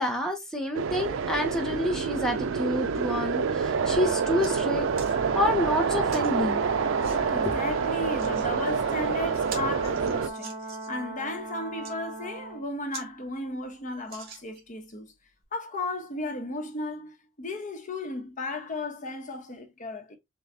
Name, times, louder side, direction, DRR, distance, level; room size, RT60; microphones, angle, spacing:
voice 1, 0.0-6.6 7.1-7.3, left 1 dB, 5° left, 0.7 m, -28 dB
sound 1, 0.7-10.3, right 6 dB, 80° right, 0.4 m, -27 dB
Brass instrument, 3.7-12.6, right 2 dB, 35° right, 1.8 m, -38 dB
sound 2, 3.8-3.9 4.1-4.5 4.9-5.2 6.1-6.3 7.0-7.2 8.0-8.5 8.9-9.0 9.3-11.0 11.6-11.9 12.5-12.6 12.9-13.1 13.4-13.5 14.1-14.8 15.4-15.5, right 5 dB, 55° right, 1.8 m, -43 dB
voice 2, 7.3-10.5 10.9-15.1 15.5-20.2, left 2 dB, 40° left, 1.0 m, -35 dB
6.6 x 2.3 x 2.6 m
head